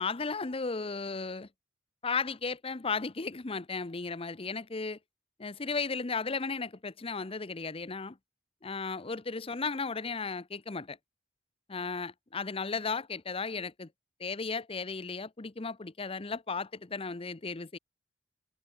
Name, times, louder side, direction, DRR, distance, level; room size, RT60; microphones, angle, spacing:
voice 1, 0.0-1.5 2.0-5.0 5.4-8.2 8.6-11.0 11.7-13.9 14.2-17.8, left 4 dB, 30° left, 0.8 m, -35 dB
head